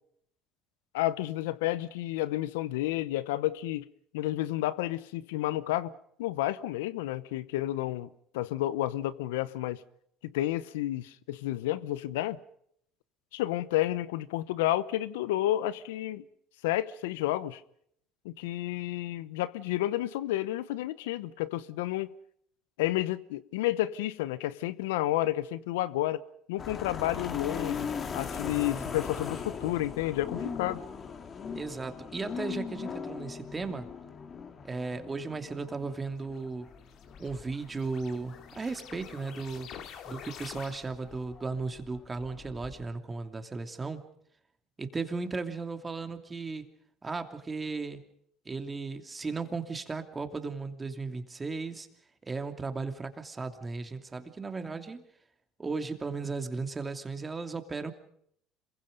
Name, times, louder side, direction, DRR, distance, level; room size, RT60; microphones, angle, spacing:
voice 1, 0.9-3.9 4.1-5.9 6.2-8.1 8.3-9.8 10.2-12.4 13.3-16.3 16.6-17.6 18.2-22.1 22.8-27.9 28.1-30.8, left 15 dB, 85° left, 0.8 m, -31 dB
sound 1, 26.6-42.8, left 5 dB, 40° left, 2.8 m, -40 dB
voice 2, 31.5-33.9 34.6-36.7 37.2-39.7 40.1-44.0 44.8-46.7 47.0-48.0 48.4-51.9 52.2-55.0 55.6-57.9, right 4 dB, 25° right, 2.8 m, -36 dB
sound 2, 36.2-41.2, left 8 dB, 60° left, 2.8 m, -48 dB
27.0 x 23.0 x 5.3 m
hypercardioid pair, 75°, 0 cm